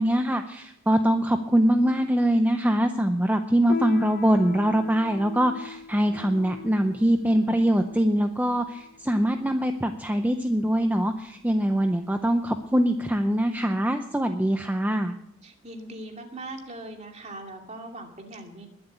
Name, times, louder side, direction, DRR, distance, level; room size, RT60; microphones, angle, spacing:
voice 1, 0.0-15.1, right 1 dB, 10° right, 6 dB, 0.6 m, -23 dB
Piano, 3.7-13.6, left 6 dB, 45° left, 0.8 m, -40 dB
voice 2, 15.4-18.7, right 2 dB, 35° right, 3 dB, 2.6 m, -40 dB
21.0 x 7.8 x 8.3 m, 0.81 s
head